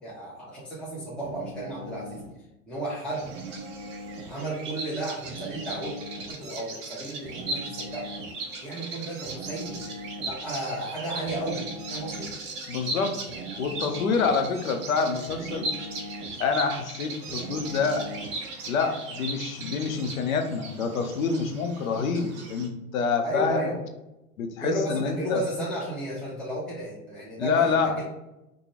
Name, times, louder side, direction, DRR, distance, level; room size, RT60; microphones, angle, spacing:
voice 1, 0.0-2.2 2.7-3.4 4.2-5.9 6.3-8.1 8.6-9.8 10.3-12.3 23.2-23.8 24.6-28.0, right 1 dB, ahead, -7 dB, 0.8 m, -33 dB
sound 1, 1.2-2.4 3.2-4.4 5.2-6.4 7.2-8.3 9.3-10.4 11.3-12.4 13.3-14.4 15.3-16.4 17.3-18.4, right 1 dB, 60° right, 0.7 m, -40 dB
Bird vocalization bird call bird song, 3.1-22.7, right 2 dB, 20° right, 0.3 m, -38 dB
voice 2, 12.7-13.1 13.6-15.7 16.4-18.1 18.7-23.7 24.4-25.4 27.4-28.0, left 5 dB, 65° left, 5 dB, 0.7 m, -27 dB
4.9 x 2.2 x 2.9 m, 0.95 s
figure-of-eight pair, 100°, 45 cm